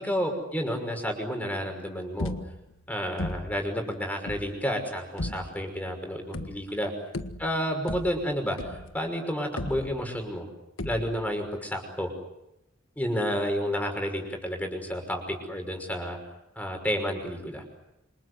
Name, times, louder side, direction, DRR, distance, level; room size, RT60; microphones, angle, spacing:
voice 1, 0.0-2.3 2.9-6.9 7.4-10.5 10.8-12.1 13.0-16.2 16.6-17.6, equal, 10° left, 4 dB, 5.9 m, -30 dB
sound 1, 2.2-2.8 3.2-3.7 4.3-4.6 5.2-5.7 6.3-6.8 7.1-9.1 9.6-10.3 10.8-11.3, left 1 dB, 90° left, 1.6 m, -36 dB
28.0 x 26.5 x 8.1 m, 0.87 s
head